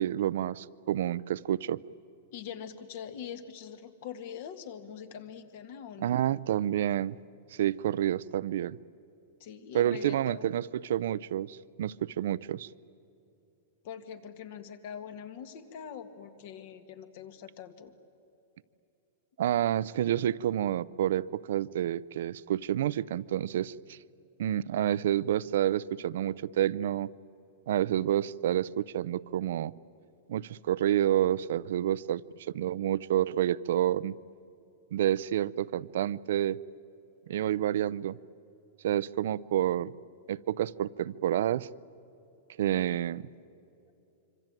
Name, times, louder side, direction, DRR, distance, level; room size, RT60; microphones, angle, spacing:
voice 1, 0.0-1.8 6.0-7.2 7.5-8.8 9.7-12.7 19.4-24.0 24.4-27.1 27.7-29.7 30.3-34.2 34.9-36.6 37.3-38.2 38.8-39.9 40.3-41.7 42.6-43.2, right 11 dB, 70° right, 19 dB, 0.5 m, -29 dB
voice 2, 2.3-6.2 9.4-10.5 13.8-17.9 42.8-43.0, left 8 dB, 55° left, 10 dB, 2.0 m, -43 dB
25.5 x 25.5 x 9.1 m, 2.9 s
supercardioid pair, 155°, 0 cm